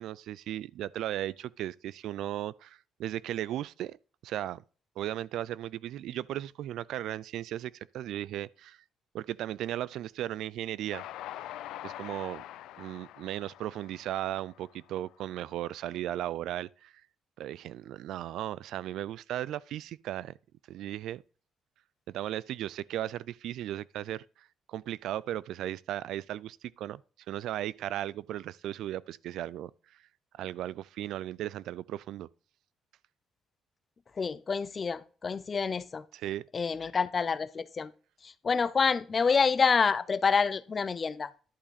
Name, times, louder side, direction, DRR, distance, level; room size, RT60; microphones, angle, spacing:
voice 1, 0.0-4.0 4.2-4.6 5.0-8.8 9.1-11.0 11.4-11.5 11.8-12.4 12.8-16.9 17.4-20.4 20.7-21.2 22.1-27.0 27.3-29.7 30.4-32.3 36.1-36.5, right 12 dB, 75° right, 0.3 m, -36 dB
Train, 10.9-15.3, left 13 dB, 90° left, 0.5 m, -44 dB
voice 2, 34.2-36.0 36.5-37.9 38.2-41.3, left 5 dB, 30° left, 0.5 m, -27 dB
11.0 x 5.7 x 4.1 m
cardioid pair, 150°, 0 cm